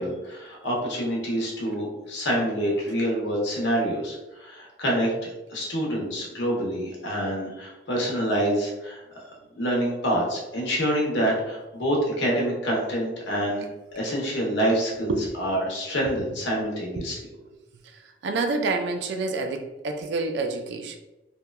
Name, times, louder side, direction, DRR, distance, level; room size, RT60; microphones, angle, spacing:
voice 1, 0.0-9.0 9.5-13.7 13.9-17.2, equal, 75° left, -2 dB, 0.7 m, -26 dB
voice 2, 17.8-21.0, right 3 dB, 70° right, 5 dB, 0.3 m, -28 dB
2.8 x 2.2 x 2.2 m, 0.99 s
head